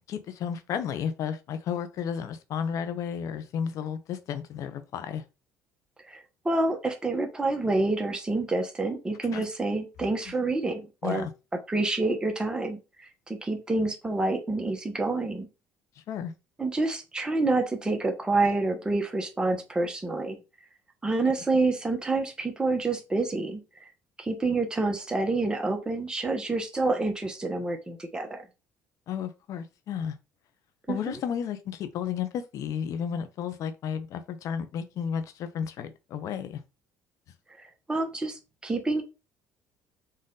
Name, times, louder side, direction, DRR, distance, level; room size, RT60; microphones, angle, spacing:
voice 1, 0.1-5.2 9.3-9.4 11.0-11.3 16.1-16.3 29.1-30.2 30.9-36.6, left 8 dB, 60° left, 0.7 m, -32 dB
voice 2, 6.4-11.3 11.7-15.5 16.6-20.4 21.0-23.6 24.2-28.5 30.9-31.2 37.6-39.0, right 2 dB, 15° right, 0.9 m, -28 dB
4.1 x 2.5 x 3.8 m
supercardioid pair, 95°, 6 cm